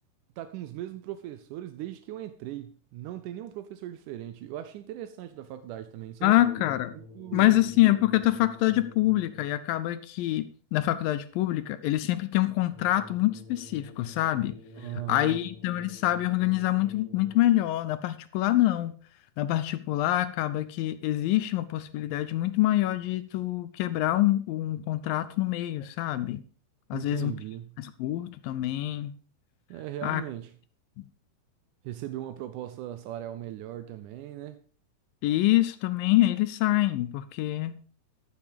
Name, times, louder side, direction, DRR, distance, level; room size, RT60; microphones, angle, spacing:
voice 1, 0.4-6.3 6.9-7.6 14.8-15.4 26.9-27.8 29.7-30.5 31.8-34.6, right 13 dB, 80° right, 1.8 m, -39 dB
voice 2, 6.2-6.9 7.3-19.0 19.4-26.4 26.9-27.3 27.8-29.1 30.0-30.2 31.0-31.1 35.2-37.8, left 15 dB, 80° left, 2.2 m, -26 dB
sound 1, 6.3-9.7 12.7-17.7, left 2 dB, 60° right, 6.1 m, -49 dB
13.5 x 7.1 x 5.1 m
omnidirectional pair, 4.5 m